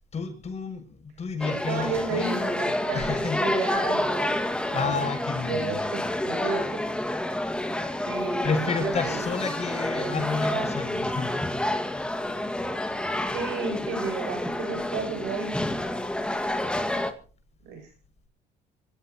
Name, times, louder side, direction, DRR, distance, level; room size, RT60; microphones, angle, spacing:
voice 1, 0.1-2.6 2.9-3.4 4.7-5.9 8.4-11.7 12.3-12.4, left 5 dB, 40° left, 4 dB, 6.7 m, -31 dB
sound 1, 1.4-17.1, left 1 dB, 5° left, 2.0 m, -29 dB
voice 2, 1.7-4.4 4.7-5.1 5.5-6.8 8.1-9.2 10.0-10.7 13.3-15.8 16.2-16.3 17.6-17.9, right 4 dB, 90° right, 5 dB, 7.7 m, -33 dB
25.5 x 15.5 x 3.0 m, 0.37 s
cardioid pair, 110°, 17 cm